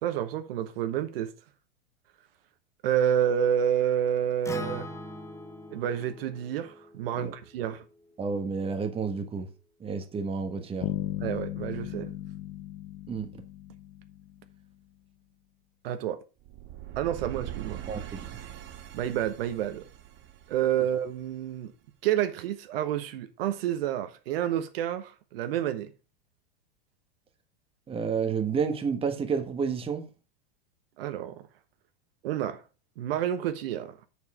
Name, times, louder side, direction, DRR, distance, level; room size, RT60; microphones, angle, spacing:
voice 1, 0.0-1.3 2.8-4.9 5.7-7.8 11.2-12.1 15.8-16.2 17.0-17.8 18.9-19.8 20.5-21.7 22.0-25.9 31.0-31.4 32.2-32.6 33.0-34.1, right 10 dB, 65° right, 1.2 m, -29 dB
Acoustic guitar, 4.4-8.7, left 1 dB, 10° left, 0.9 m, -43 dB
voice 2, 8.2-9.5 9.8-10.9 13.1-13.3 17.9-18.2 27.9-30.0, right 5 dB, 20° right, 1.3 m, -30 dB
Bass guitar, 10.8-14.6, left 13 dB, 50° left, 1.0 m, -36 dB
sound 1, 16.4-21.5, right 12 dB, 35° right, 1.4 m, -42 dB
7.2 x 6.6 x 4.8 m
hypercardioid pair, 120°, 31 cm